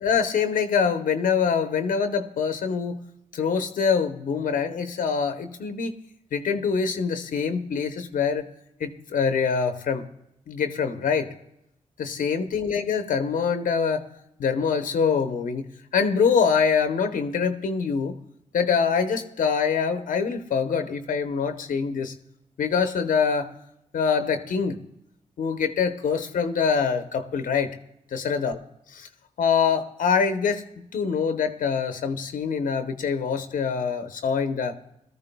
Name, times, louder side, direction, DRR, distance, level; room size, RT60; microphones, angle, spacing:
voice 1, 0.0-3.0 3.3-5.9 6.3-8.5 8.8-10.0 10.5-11.3 12.0-14.1 14.4-15.7 15.9-18.2 18.5-22.1 22.6-23.5 23.9-24.8 25.4-27.7 28.1-28.6 28.9-29.1 29.4-34.7, left 6 dB, 80° left, 8 dB, 0.8 m, -24 dB
18.0 x 13.5 x 2.2 m, 0.81 s
cardioid pair, 60°, 14 cm